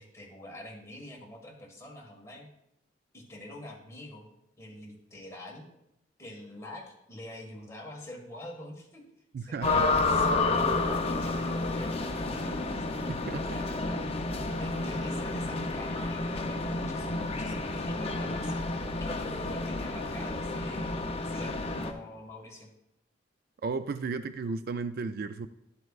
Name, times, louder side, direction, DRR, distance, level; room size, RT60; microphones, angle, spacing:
voice 1, 0.0-2.5 3.1-4.3 4.6-5.7 6.2-9.0 9.4-12.9 13.5-14.1 14.6-18.6 19.0-22.7, left 1 dB, 15° left, -1 dB, 1.7 m, -45 dB
voice 2, 9.3-9.8 13.1-13.5 23.6-25.5, right 4 dB, 55° right, 11 dB, 0.4 m, -34 dB
sound 1, 9.6-21.9, left 3 dB, 35° left, 0.7 m, -30 dB
11.5 x 7.8 x 2.4 m, 0.82 s
head